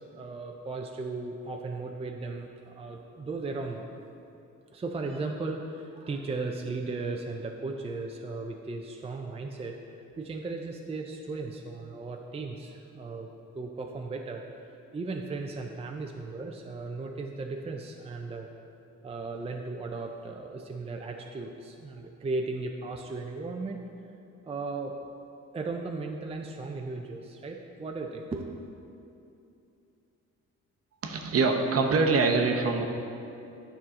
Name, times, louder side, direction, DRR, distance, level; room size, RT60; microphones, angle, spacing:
voice 1, 0.1-3.9 4.7-13.3 13.5-14.4 14.9-18.5 19.0-23.8 24.5-25.0 25.5-28.7, right 3 dB, 20° right, 2 dB, 0.5 m, -36 dB
voice 2, 31.0-32.8, right 4 dB, 50° right, 3 dB, 0.9 m, -24 dB
9.8 x 5.7 x 3.7 m, 2.7 s
cardioid pair, 90°, 30 cm